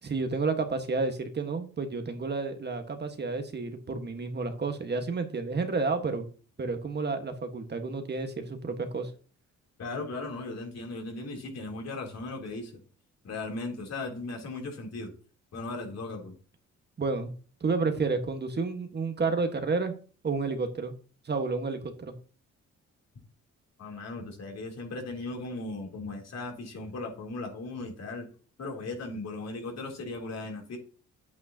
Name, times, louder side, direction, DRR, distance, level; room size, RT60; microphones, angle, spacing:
voice 1, 0.0-6.2 6.6-9.1 17.0-17.3 17.6-19.9 20.2-20.9 21.2-22.1, right 4 dB, 35° right, 6 dB, 1.5 m, -30 dB
voice 2, 9.8-12.8 13.2-15.1 15.5-16.3 23.8-28.3 28.6-30.8, left 2 dB, 60° left, 1 dB, 3.2 m, -37 dB
9.2 x 8.6 x 2.9 m, 0.40 s
cardioid pair, 90°, 30 cm